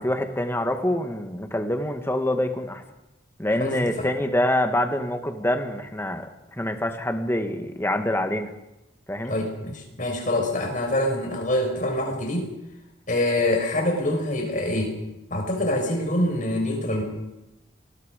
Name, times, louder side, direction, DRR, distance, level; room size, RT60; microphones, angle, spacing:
voice 1, 0.0-2.8 3.4-8.5 9.1-9.3, left 1 dB, 15° left, 6 dB, 1.9 m, -26 dB
voice 2, 3.6-4.1 9.3-12.5 13.1-15.0 15.3-17.0, left 1 dB, 45° left, 2 dB, 6.1 m, -25 dB
29.0 x 20.5 x 5.3 m, 0.94 s
head